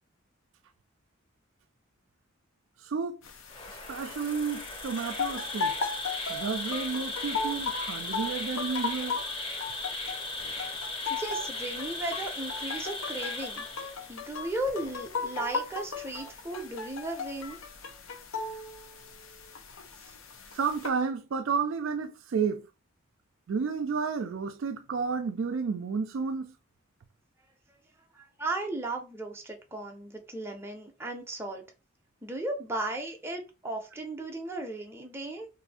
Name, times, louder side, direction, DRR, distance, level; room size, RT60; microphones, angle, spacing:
voice 1, 2.8-3.2 3.7-5.8 6.3-9.2 20.5-22.7 23.5-26.5, right 5 dB, 70° right, 0.4 m, -31 dB
sound 1, 3.2-20.9, left 4 dB, 80° left, 0.6 m, -37 dB
Insect, 3.5-14.3, left 2 dB, 25° left, 0.7 m, -37 dB
voice 2, 11.1-13.7 14.1-17.6 20.0-20.1 28.1-31.6 32.2-35.5, right 2 dB, 10° right, 0.6 m, -36 dB
2.6 x 2.6 x 4.1 m
head